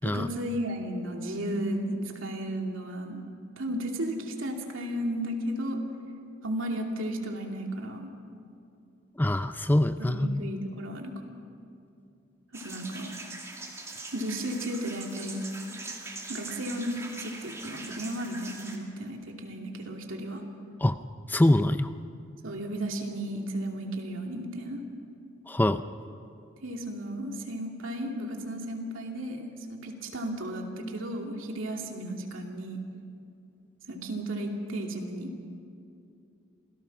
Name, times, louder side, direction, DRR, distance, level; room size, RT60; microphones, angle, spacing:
voice 1, 0.0-3.2 3.6-5.8 6.4-8.1 10.0-11.1 12.5-13.1 14.1-15.4 16.3-20.4 22.4-24.8 26.6-32.8 33.9-35.3, right 1 dB, 75° right, 1 dB, 2.7 m, -34 dB
voice 2, 9.2-10.5 20.8-21.0 21.3-21.9 25.5-25.8, left 1 dB, 10° left, 11 dB, 0.4 m, -24 dB
sound 1, 12.5-18.8, right 3 dB, 15° right, 2.4 m, -42 dB
27.0 x 17.5 x 6.1 m, 2.5 s
head